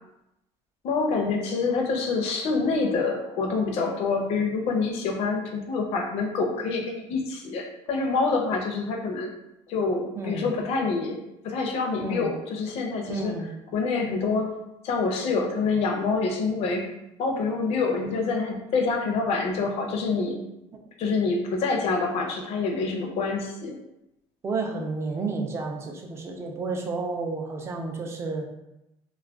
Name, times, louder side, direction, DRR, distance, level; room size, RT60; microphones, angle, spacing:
voice 1, 0.8-9.3 9.7-11.2 11.4-14.5 14.8-16.8 17.2-20.4 21.0-23.8, left 4 dB, 55° left, 2 dB, 0.5 m, -26 dB
voice 2, 10.2-10.5 12.0-12.3 13.1-13.5 24.4-28.5, right 3 dB, 20° right, 2 dB, 0.4 m, -31 dB
2.3 x 2.1 x 3.5 m, 0.89 s
cardioid pair, 155°, 13 cm